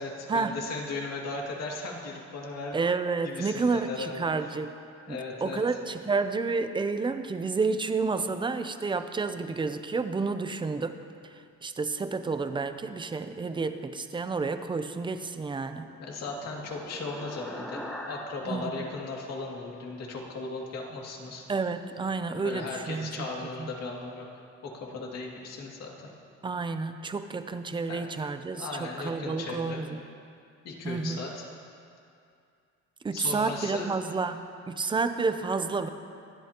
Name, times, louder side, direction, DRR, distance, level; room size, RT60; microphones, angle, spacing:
voice 1, 0.0-2.8 3.2-4.5 5.1-5.6 16.0-21.5 22.4-24.3 24.6-25.9 27.9-28.0 28.6-29.8 30.6-31.5 33.1-33.9, left 3 dB, 55° left, -2 dB, 2.5 m, -37 dB
voice 2, 2.7-4.7 5.1-11.0 11.3-15.9 18.5-18.8 21.5-23.3 23.6-23.7 26.4-30.0 30.8-31.2 33.0-35.9, right 4 dB, 15° right, 9 dB, 0.5 m, -30 dB
sound 1, 15.4-20.0, left 1 dB, 5° left, 1.1 m, -43 dB
25.5 x 12.0 x 2.9 m, 2.4 s
cardioid pair, 165°, 31 cm